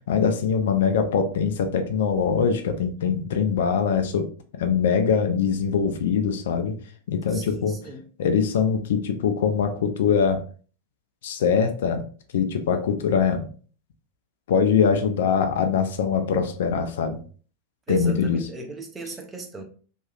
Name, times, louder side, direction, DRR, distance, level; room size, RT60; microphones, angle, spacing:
voice 1, 0.1-6.8 7.1-7.8 8.2-10.4 11.2-12.0 12.3-13.5 14.5-17.2 17.9-18.5, left 6 dB, 60° left, 0.4 m, -23 dB
voice 2, 7.3-8.0 17.9-19.6, right 3 dB, 15° right, 0.6 m, -37 dB
2.7 x 2.3 x 2.4 m
figure-of-eight pair, 90°, 0 cm